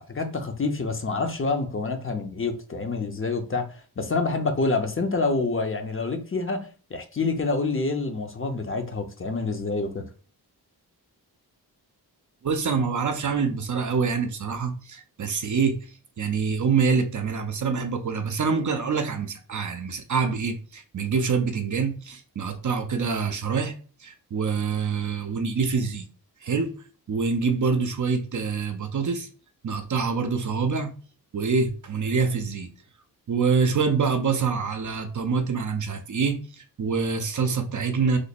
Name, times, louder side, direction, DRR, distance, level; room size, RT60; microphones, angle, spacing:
voice 1, 0.0-10.1, left 3 dB, 30° left, 0.7 m, -27 dB
voice 2, 12.4-15.8 16.2-23.7 24.0-26.1 26.4-26.7 27.1-29.3 29.6-30.9 31.3-32.7 33.3-38.2, right 5 dB, 50° right, 0.6 m, -25 dB
3.2 x 2.1 x 4.1 m
cardioid pair, 80°, 39 cm